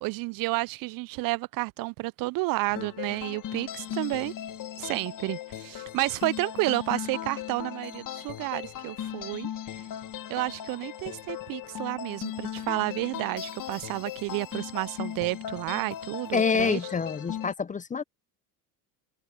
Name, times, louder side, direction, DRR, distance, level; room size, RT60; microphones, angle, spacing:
voice 1, 0.0-4.3 4.8-9.5 10.3-16.8, right 22 dB, 50° right, 0.5 m, -31 dB
sound 1, 2.8-17.5, left 11 dB, 45° left, 1.9 m, -38 dB
voice 2, 16.3-18.0, left 5 dB, 15° left, 0.6 m, -27 dB
hypercardioid pair, 80°, 46 cm